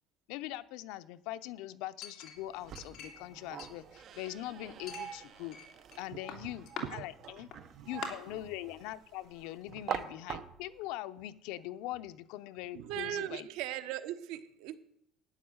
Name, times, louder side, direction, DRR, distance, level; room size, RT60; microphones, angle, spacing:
voice 1, 0.3-5.6 6.0-7.5 7.9-13.5, left 14 dB, 75° left, 0.7 m, -42 dB
Chink clink, 2.0-3.3 3.6-4.4 4.9-6.0 6.3-6.8 7.5-7.6 8.0-8.1, left 7 dB, 45° left, 2.6 m, -44 dB
sound 1, 2.4-10.9, right 8 dB, 40° right, 1.1 m, -45 dB
voice 2, 12.7-14.8, right 12 dB, 70° right, 1.1 m, -39 dB
11.5 x 9.5 x 8.0 m
cardioid pair, 165°, 0 cm